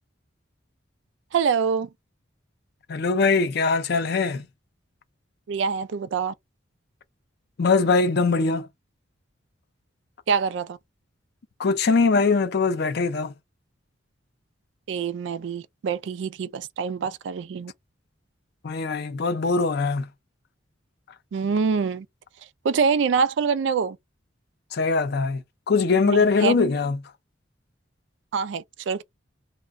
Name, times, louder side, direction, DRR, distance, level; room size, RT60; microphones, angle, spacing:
voice 1, 1.3-1.9 5.5-6.3 10.3-10.8 14.9-17.7 21.3-22.1 22.6-24.0 26.1-26.6 28.3-29.0, right 5 dB, 70° right, 0.3 m, -25 dB
voice 2, 2.9-4.5 7.6-8.7 11.6-13.3 18.6-20.0 24.7-27.0, left 4 dB, 55° left, 0.5 m, -22 dB
2.3 x 2.1 x 3.5 m
head